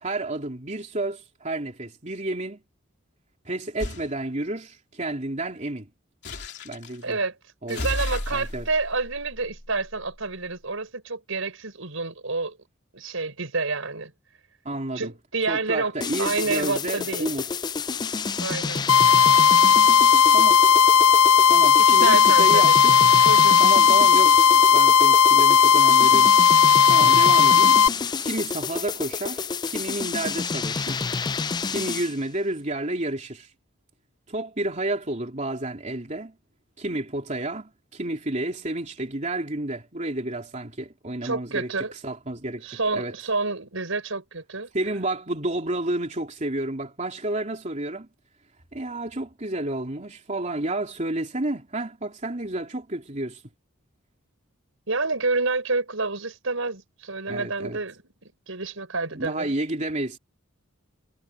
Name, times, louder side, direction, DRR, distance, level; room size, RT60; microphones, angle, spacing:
voice 1, 0.0-2.6 3.4-5.9 6.6-7.2 7.6-7.8 8.3-8.7 14.6-15.1 15.5-17.5 20.3-20.6 21.5-22.9 23.6-27.8 28.2-31.1 31.7-33.5 34.3-36.3 36.8-43.1 44.7-48.1 48.7-53.4 57.3-57.8 59.2-60.2, right 2 dB, 35° right, 3.2 m, -30 dB
sound 1, 3.8-4.1 6.2-7.0 7.7-10.3, left 1 dB, 55° left, 3.0 m, -34 dB
voice 2, 7.0-7.4 7.7-12.6 12.9-14.1 15.0-15.9 16.2-17.3 18.4-18.8 21.8-22.8 23.3-23.6 41.2-41.9 42.6-44.7 54.9-59.5, right 3 dB, 70° right, 5.5 m, -28 dB
sound 2, 16.0-32.2, left 5 dB, 20° left, 0.3 m, -29 dB
sound 3, 18.9-27.9, left 7 dB, 80° left, 0.6 m, -16 dB
head